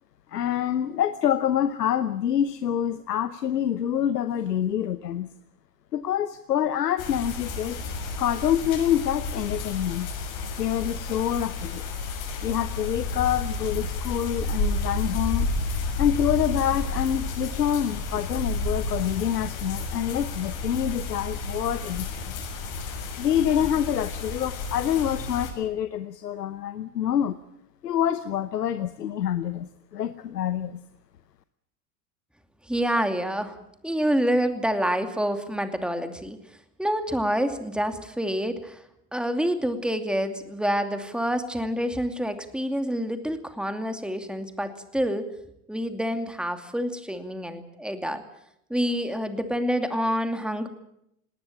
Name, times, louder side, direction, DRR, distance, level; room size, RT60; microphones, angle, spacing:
voice 1, 0.3-5.3 5.9-7.8 8.2-10.1 10.6-11.8 12.4-15.5 16.0-22.4 23.2-27.4 27.8-30.8, left 10 dB, 85° left, 12 dB, 0.9 m, -26 dB
sound 1, 7.0-25.5, left 3 dB, 60° left, 7.1 m, -31 dB
voice 2, 32.7-33.6 33.8-36.4 36.8-38.8 39.1-45.3 45.7-48.2 48.7-50.7, equal, ahead, 7 dB, 2.6 m, -27 dB
19.0 x 18.5 x 8.9 m, 0.79 s
hypercardioid pair, 80°, 47 cm